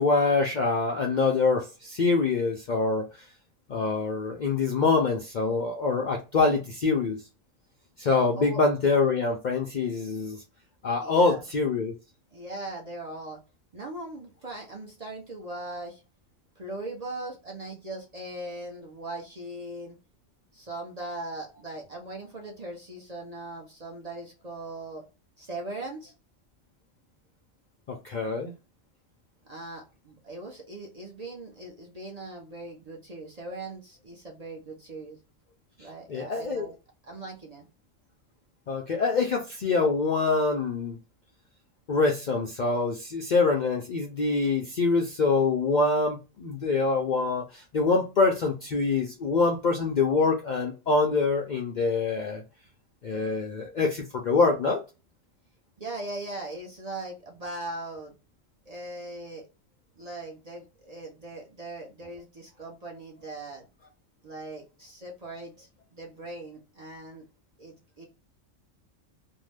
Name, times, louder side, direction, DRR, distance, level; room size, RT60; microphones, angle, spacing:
voice 1, 0.0-3.2 3.7-7.2 8.0-10.4 10.8-11.9 27.9-28.5 36.1-36.7 38.7-41.0 41.9-52.4 53.0-54.8, left 4 dB, 55° left, 0.5 m, -25 dB
voice 2, 11.0-11.4 12.3-13.4 13.7-16.0 16.6-20.0 20.5-25.0 25.4-26.1 29.5-35.2 35.8-36.7 37.0-37.7 55.8-58.1 58.7-59.4 60.0-63.7 64.2-67.3 67.6-68.1, right 2 dB, 40° right, 0.6 m, -39 dB
2.6 x 2.1 x 3.2 m
omnidirectional pair, 1.3 m